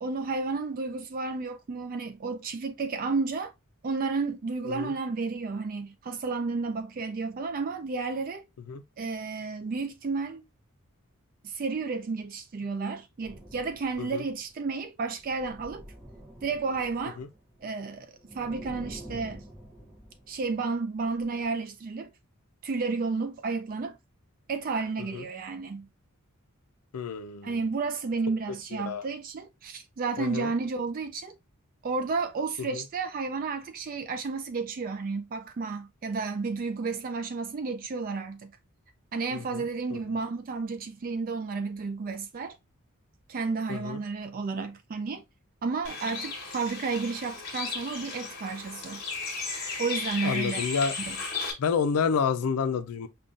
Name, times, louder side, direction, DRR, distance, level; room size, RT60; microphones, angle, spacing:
voice 1, 0.0-3.5 3.8-8.4 9.0-10.4 11.4-15.8 16.4-17.2 17.6-19.4 20.3-22.1 22.6-24.0 24.5-25.9 27.4-31.4 31.8-38.5 39.1-42.6 43.3-45.2 45.6-49.0 49.8-50.7 51.1-51.2, right 4 dB, 40° right, 0.3 m, -32 dB
sound 1, 13.2-14.5 15.2-17.6 18.0-20.8 21.2-21.5, right 1 dB, 5° right, 0.7 m, -47 dB
voice 2, 26.9-27.6 28.8-29.1 30.2-30.5 32.7-32.8 39.3-39.7 39.9-40.0 43.7-44.0 50.2-50.9 51.6-53.1, left 6 dB, 90° left, 0.4 m, -29 dB
Bird, 45.8-51.5, left 4 dB, 50° left, 1.2 m, -35 dB
5.3 x 2.2 x 2.4 m
head